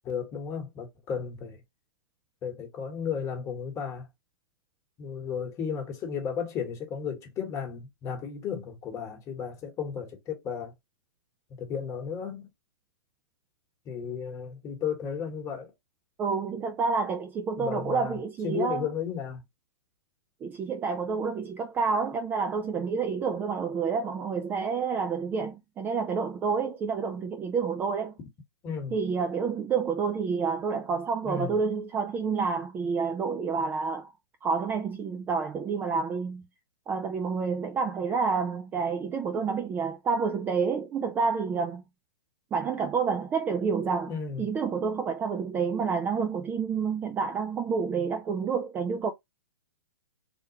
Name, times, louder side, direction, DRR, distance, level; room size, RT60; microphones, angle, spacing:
voice 1, 0.0-1.6 2.4-4.1 5.0-10.7 11.6-12.5 13.8-15.7 17.6-19.4 28.6-29.0 31.2-31.6 44.1-44.5, left 7 dB, 25° left, 1.2 m, -34 dB
voice 2, 16.2-18.9 20.4-28.1 28.9-34.1 34.4-36.4 36.9-41.8 42.5-44.1 44.4-49.1, right 5 dB, 15° right, 0.3 m, -29 dB
3.5 x 2.3 x 2.8 m
hypercardioid pair, 125°, 13 cm